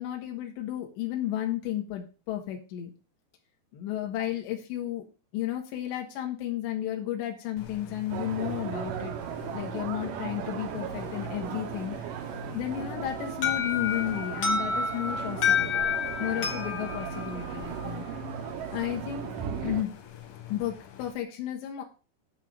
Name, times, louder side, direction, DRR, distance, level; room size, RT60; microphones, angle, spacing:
voice 1, 0.0-2.9 3.7-5.1 5.3-9.1 9.5-12.0 12.5-15.8 16.2-18.1 18.7-19.9 20.5-21.8, left 12 dB, 85° left, 1 dB, 3.9 m, -33 dB
sound 1, 7.6-21.1, left 10 dB, 65° left, 2.9 m, -45 dB
sound 2, 8.1-19.8, right 10 dB, 80° right, 1.9 m, -37 dB
Alarm, 13.4-18.2, left 6 dB, 45° left, 1.9 m, -29 dB
10.5 x 4.0 x 7.4 m, 0.34 s
omnidirectional pair, 5.0 m